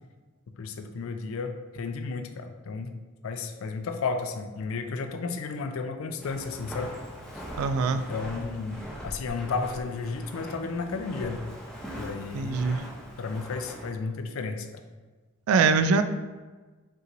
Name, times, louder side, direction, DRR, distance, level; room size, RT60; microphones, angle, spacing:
voice 1, 0.6-2.9 3.2-6.9 7.9-11.4 12.0-12.9 13.2-14.7, left 4 dB, 70° left, 7 dB, 0.4 m, -33 dB
Walk footsteps, 6.2-13.9, equal, 5° left, 0.6 m, -41 dB
voice 2, 7.6-8.0 12.3-12.8 15.5-16.0, right 5 dB, 75° right, 11 dB, 0.3 m, -23 dB
5.3 x 3.0 x 2.5 m, 1.3 s
head